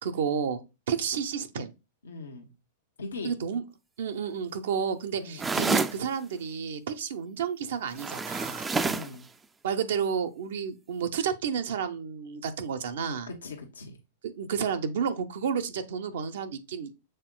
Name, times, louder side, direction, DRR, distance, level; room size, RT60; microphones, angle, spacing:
voice 1, 0.0-0.6 0.9-1.7 3.2-3.6 4.0-8.7 9.6-13.3 14.2-16.9, right 7 dB, 70° right, 0.6 m, -31 dB
voice 2, 2.0-2.5 3.0-3.4 5.2-5.5 8.8-9.3 13.3-14.0, left 3 dB, 90° left, 0.9 m, -40 dB
sound 1, 5.4-6.0 7.9-9.1, right 3 dB, 15° right, 0.3 m, -28 dB
6.5 x 3.6 x 2.2 m
hypercardioid pair, 110°, 0 cm